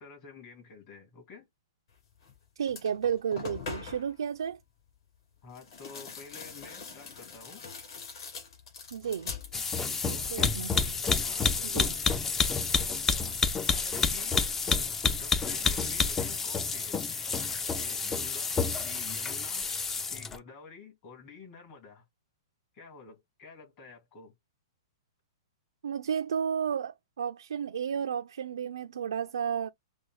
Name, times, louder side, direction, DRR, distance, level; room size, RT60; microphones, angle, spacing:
voice 1, 0.0-1.5 5.4-7.6 10.0-10.5 11.2-11.9 13.2-14.4 15.2-17.0 17.8-19.6 20.0-22.0 22.7-24.3, left 5 dB, 35° left, 2.2 m, -50 dB
sound 1, 2.2-2.4 2.7-4.2 5.5-10.1 10.4-11.0, left 5 dB, 55° left, 2.6 m, -43 dB
voice 2, 2.6-4.6 8.9-9.3 10.1-10.7 11.6-11.9 25.8-29.7, right 7 dB, 85° right, 0.3 m, -32 dB
sound 2, 9.5-20.4, left 5 dB, 10° left, 0.3 m, -29 dB
5.1 x 2.1 x 2.3 m
hypercardioid pair, 145°, 2 cm